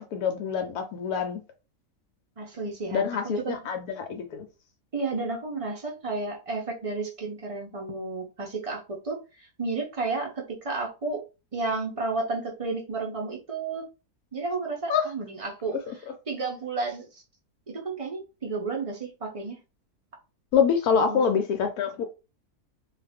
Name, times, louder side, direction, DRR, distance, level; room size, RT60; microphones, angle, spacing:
voice 1, 0.0-1.4 2.9-4.5 14.9-15.1 15.9-16.0 20.5-22.0, left 7 dB, 80° left, 1.1 m, -26 dB
voice 2, 2.4-3.6 4.9-11.2 11.5-13.9 14.3-15.7 16.3-17.2 17.7-19.6 20.9-21.2, right 3 dB, 55° right, 0.4 m, -32 dB
2.5 x 2.4 x 3.4 m
omnidirectional pair, 1.6 m